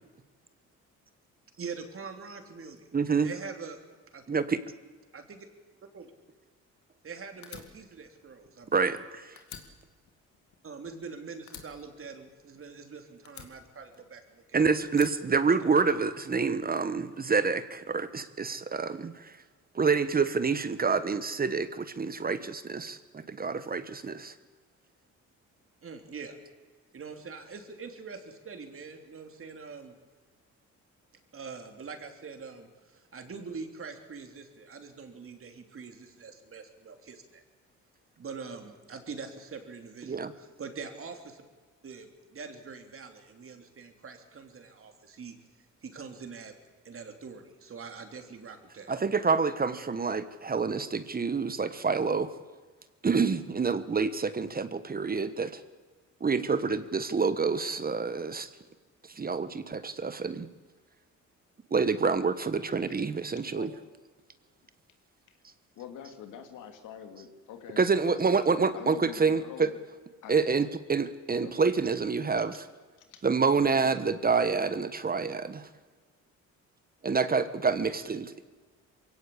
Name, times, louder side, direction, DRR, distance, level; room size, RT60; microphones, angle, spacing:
voice 1, 1.6-2.9 3.2-3.8 4.1-4.2 5.1-5.4 5.9-6.1 7.0-8.8 10.6-14.6 15.4-15.9 25.8-26.4 26.9-29.9 31.3-37.4 38.2-41.4 41.8-45.3 45.8-46.5 46.8-48.9, right 5 dB, 45° right, 5 dB, 3.3 m, -44 dB
voice 2, 2.9-3.3 4.3-4.6 8.7-9.3 14.5-19.3 19.7-24.3 40.1-40.3 48.9-52.3 53.0-55.6 56.2-58.5 59.1-60.5 61.7-63.7 67.8-69.7 70.3-72.6 73.2-75.7 77.0-78.4, right 5 dB, 30° right, 12 dB, 1.2 m, -27 dB
Fire, 7.4-9.1 9.4-11.1 11.5-12.8 13.3-14.4 14.9-16.1, left 8 dB, 70° left, 2.5 m, -49 dB
voice 3, 65.8-68.1 68.7-69.8 70.2-70.3 71.3-71.5 73.1-73.2, left 8 dB, 90° left, 6 dB, 2.6 m, -45 dB
22.5 x 17.0 x 8.5 m, 1.4 s
cardioid pair, 90°, 30 cm